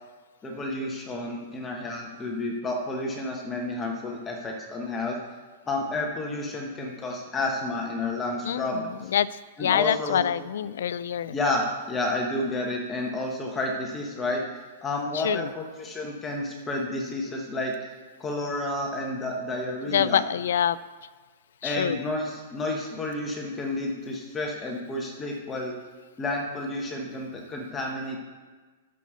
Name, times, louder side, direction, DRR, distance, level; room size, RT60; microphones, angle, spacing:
voice 1, 0.4-5.2 5.7-9.1 9.6-10.3 11.3-14.4 14.8-17.7 18.2-20.2 21.6-25.7 26.2-28.2, left 2 dB, 15° left, 0 dB, 1.1 m, -30 dB
voice 2, 9.6-11.3 15.2-15.5 19.9-20.8 21.6-22.0, left 9 dB, 75° left, 17 dB, 0.4 m, -25 dB
9.2 x 6.5 x 6.8 m, 1.4 s
supercardioid pair, 165°, 0 cm